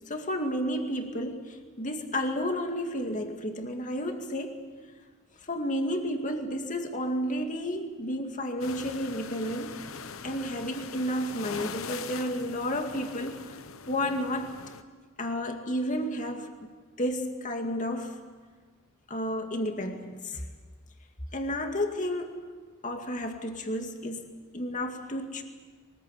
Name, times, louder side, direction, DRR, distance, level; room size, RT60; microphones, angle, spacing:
voice 1, 0.1-4.7 5.5-9.8 10.2-13.4 13.9-14.6 15.2-18.2 19.1-20.4 21.3-22.4 22.8-25.4, equal, 40° left, 4 dB, 2.2 m, -32 dB
sound 1, 8.6-14.8, left 5 dB, 80° left, 1.0 m, -42 dB
23.5 x 20.0 x 8.3 m, 1.5 s
head